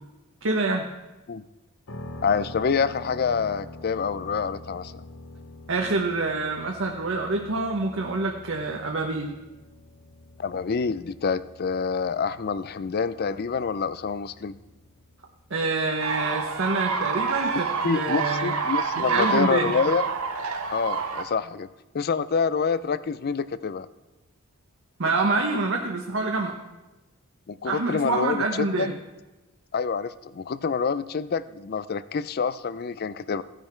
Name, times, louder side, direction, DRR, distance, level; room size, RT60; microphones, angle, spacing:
voice 1, 0.4-0.9 5.7-9.3 15.5-18.5 19.0-19.7 25.0-26.6 27.6-28.9, right 3 dB, 60° right, 1 dB, 1.0 m, -26 dB
sound 1, 1.9-17.7, left 2 dB, 60° left, 0.8 m, -46 dB
voice 2, 2.2-5.0 10.4-14.6 17.8-20.1 20.7-21.7 21.9-23.9 27.5-28.9 29.7-33.4, left 5 dB, 45° left, 16 dB, 0.4 m, -27 dB
sound 2, 16.0-21.2, right 5 dB, 85° right, 1.2 m, -28 dB
15.0 x 9.9 x 4.4 m, 1.1 s
head